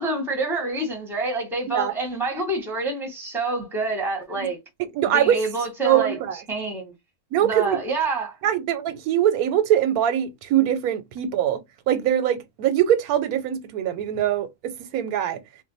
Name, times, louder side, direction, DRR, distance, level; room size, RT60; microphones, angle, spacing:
voice 1, 0.0-4.6 5.1-6.2 6.5-6.9 7.4-8.4, right 2 dB, ahead, 0.7 m, -27 dB
voice 2, 4.8-5.4 5.8-6.4 7.3-7.8 8.4-15.4, right 10 dB, 90° right, 1.1 m, -23 dB
2.6 x 2.1 x 3.9 m
omnidirectional pair, 1.5 m